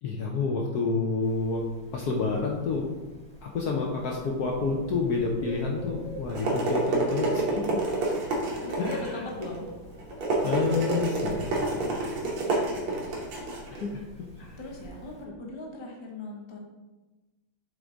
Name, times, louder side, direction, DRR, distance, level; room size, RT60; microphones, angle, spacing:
voice 1, 0.0-1.6 1.9-2.9 3.4-7.8 8.8-9.3 10.1-12.1 13.7-14.0 14.4-14.6 15.2-15.3, left 4 dB, 65° left, 0 dB, 1.0 m, -29 dB
Bird, 1.2-15.2, right 1 dB, 5° left, 0.9 m, -47 dB
sound 1, 6.0-14.9, right 2 dB, 80° right, 2.2 m, -29 dB
voice 2, 8.6-9.6 11.8-12.9 14.6-16.6, left 2 dB, 35° left, -1 dB, 0.4 m, -40 dB
7.9 x 3.7 x 3.9 m, 1.2 s
omnidirectional pair, 2.3 m